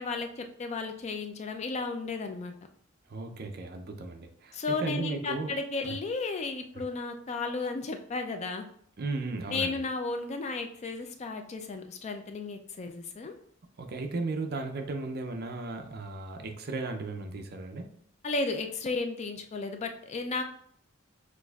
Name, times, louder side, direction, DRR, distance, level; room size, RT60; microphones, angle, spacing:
voice 1, 0.0-2.5 4.5-8.7 9.5-13.3 18.2-20.4, left 3 dB, 35° left, 6 dB, 0.3 m, -34 dB
voice 2, 3.1-5.5 5.8-6.0 6.8-6.9 9.0-9.8 13.8-17.9, right 3 dB, 50° right, 5 dB, 0.5 m, -35 dB
6.2 x 2.5 x 2.3 m, 0.63 s
head